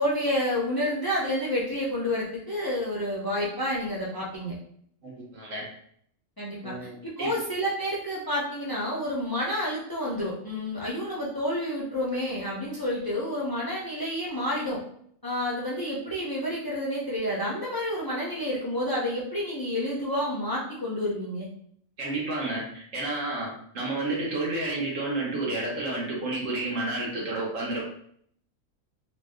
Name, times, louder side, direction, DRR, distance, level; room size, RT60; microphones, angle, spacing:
voice 1, 0.0-4.6 6.4-6.9 7.2-14.8 15.2-21.5, left 1 dB, 30° left, -6 dB, 0.4 m, -29 dB
voice 2, 5.0-5.7 6.6-7.4 22.0-27.8, right 2 dB, 70° right, -3 dB, 1.2 m, -31 dB
2.8 x 2.2 x 3.5 m, 0.64 s
omnidirectional pair, 1.4 m